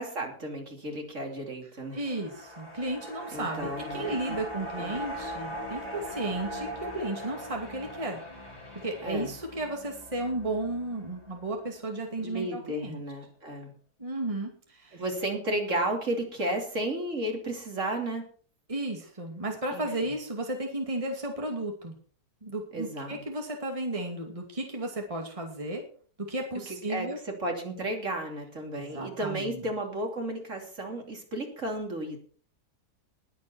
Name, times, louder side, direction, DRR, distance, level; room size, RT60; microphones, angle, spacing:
voice 1, 0.0-2.0 3.3-4.4 4.8-5.0 9.0-9.3 12.2-13.7 14.9-18.3 19.7-20.1 22.7-23.2 26.7-32.2, right 1 dB, 50° right, 2 dB, 3.4 m, -33 dB
sound 1, 1.8-12.2 12.5-12.6, equal, 25° left, 4.6 m, -40 dB
voice 2, 1.9-8.2 8.8-13.0 14.0-15.0 18.7-21.9 22.4-25.8 26.2-27.2 28.7-29.6, right 2 dB, 20° right, 2 dB, 2.5 m, -34 dB
20.5 x 8.4 x 4.4 m, 0.43 s
omnidirectional pair, 1.6 m